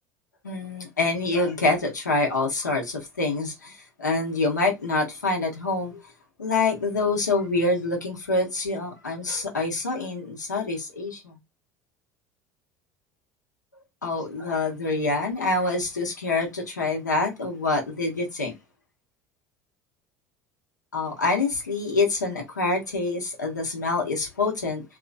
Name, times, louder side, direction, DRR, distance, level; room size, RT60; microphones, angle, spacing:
voice 1, 0.4-6.0 6.4-11.3 14.0-18.5 20.9-24.8, left 3 dB, 90° left, 0.9 m, -26 dB
2.9 x 2.5 x 2.4 m
figure-of-eight pair, 65°, 9 cm